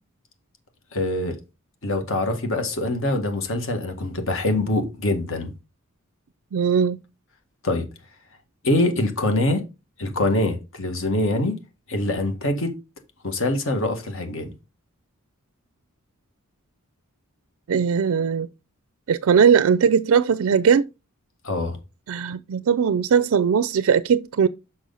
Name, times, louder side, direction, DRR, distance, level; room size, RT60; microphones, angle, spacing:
voice 1, 0.9-1.4 1.8-5.5 7.6-7.9 8.6-9.6 10.0-11.6 11.9-12.8 13.2-14.5 21.4-21.8, left 1 dB, 65° left, 1.8 m, -24 dB
voice 2, 6.5-7.0 17.7-18.5 19.1-20.9 22.1-24.5, right 7 dB, 70° right, 0.4 m, -19 dB
6.2 x 6.1 x 4.0 m
head